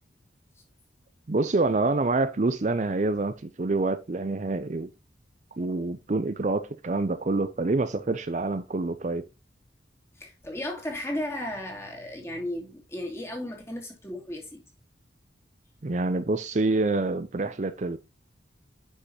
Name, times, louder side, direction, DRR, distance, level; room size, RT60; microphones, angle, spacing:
voice 1, 1.3-4.9 5.6-9.2 15.8-18.0, right 3 dB, 40° right, 0.5 m, -26 dB
voice 2, 10.2-14.6, left 1 dB, 15° left, 2.4 m, -35 dB
10.0 x 5.6 x 2.9 m
head